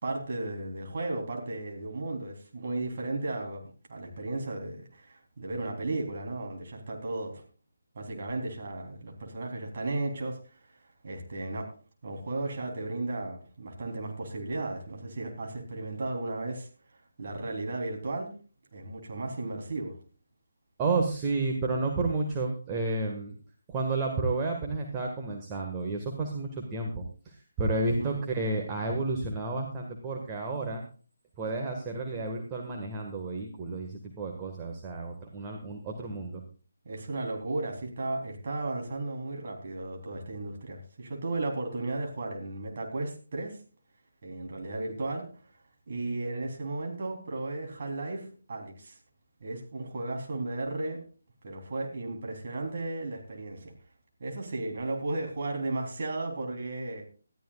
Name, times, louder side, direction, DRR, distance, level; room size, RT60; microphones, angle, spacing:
voice 1, 0.0-7.4 8.0-10.4 11.0-11.7 12.0-16.7 17.2-18.4 18.7-20.0 27.7-28.1 36.9-43.6 44.2-45.3 45.9-49.0 49.4-51.0 51.4-53.7 54.2-57.0, right 2 dB, 45° right, 1 dB, 3.6 m, -35 dB
voice 2, 20.8-23.3 23.7-30.8 31.4-36.4, right 3 dB, 15° right, 1 dB, 1.7 m, -31 dB
20.5 x 13.5 x 2.4 m, 0.38 s
figure-of-eight pair, 150°, 0 cm